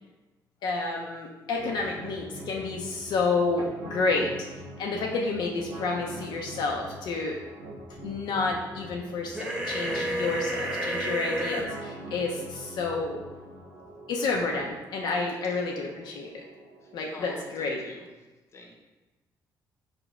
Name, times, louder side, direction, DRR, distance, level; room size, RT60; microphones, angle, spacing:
voice 1, 0.6-4.3 4.8-7.4 8.0-13.2 14.1-16.4 16.9-17.8, left 3 dB, 70° left, -1 dB, 0.5 m, -30 dB
sound 1, 1.6-17.6, right 1 dB, 75° right, 1.2 m, -44 dB
sound 2, 9.3-11.6, right 1 dB, 10° right, 0.6 m, -30 dB
voice 2, 16.8-18.1 18.5-18.7, left 2 dB, 35° left, 1 dB, 0.8 m, -46 dB
4.9 x 2.1 x 4.7 m, 1.1 s
cardioid pair, 130°, 8 cm